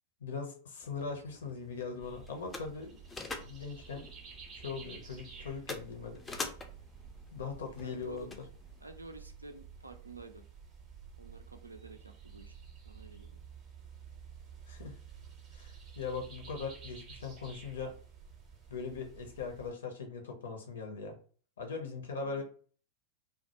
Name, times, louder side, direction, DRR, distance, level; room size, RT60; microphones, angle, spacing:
voice 1, 0.2-4.1 4.5-6.2 7.3-8.4 14.7-14.9 15.5-17.9 18.7-21.2 21.6-22.4, left 5 dB, 65° left, 3 dB, 0.6 m, -40 dB
sound 1, 0.8-8.8, left 3 dB, 15° left, 0.4 m, -47 dB
sound 2, 2.0-19.7, right 6 dB, 30° right, 0.6 m, -52 dB
voice 2, 7.8-8.3 8.8-10.4 11.2-12.5 12.9-13.4 22.2-22.4, right 3 dB, 80° right, 6 dB, 0.3 m, -49 dB
2.1 x 2.1 x 2.9 m, 0.43 s
figure-of-eight pair, 90°, 0 cm